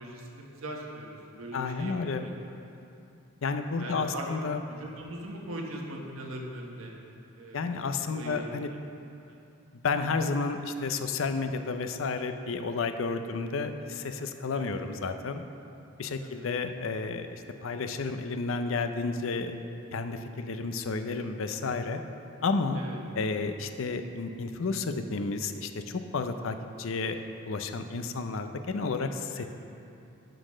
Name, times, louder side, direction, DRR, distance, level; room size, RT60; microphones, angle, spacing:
voice 1, 0.0-2.3 3.8-4.3 4.8-7.0 7.4-8.5 9.3-9.4 14.5-14.8 16.2-16.5 22.7-23.0 29.4-29.5, right 1 dB, 75° right, -1 dB, 1.3 m, -41 dB
voice 2, 1.5-2.3 3.4-4.6 7.5-8.7 9.8-15.4 16.0-19.6 19.9-22.0 22.4-22.8 23.1-29.5, left 4 dB, 65° left, 8 dB, 0.5 m, -31 dB
11.5 x 4.0 x 6.2 m, 2.7 s
head